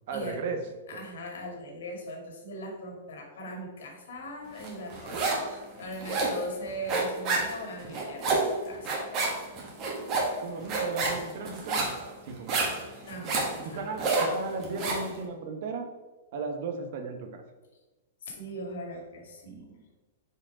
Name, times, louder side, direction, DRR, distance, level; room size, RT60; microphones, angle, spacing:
voice 1, 0.1-0.6 0.9-1.0 10.4-12.7 13.6-15.9 16.3-17.4, right 4 dB, 55° right, 5 dB, 1.1 m, -35 dB
voice 2, 0.9-8.9 13.0-14.0 18.2-20.0, equal, 75° left, 0 dB, 2.1 m, -40 dB
sound 1, 4.6-5.5 5.8-15.1, right 3 dB, 30° right, 1.6 m, -29 dB
5.2 x 5.0 x 4.8 m, 1.2 s
hypercardioid pair, 150°, 0 cm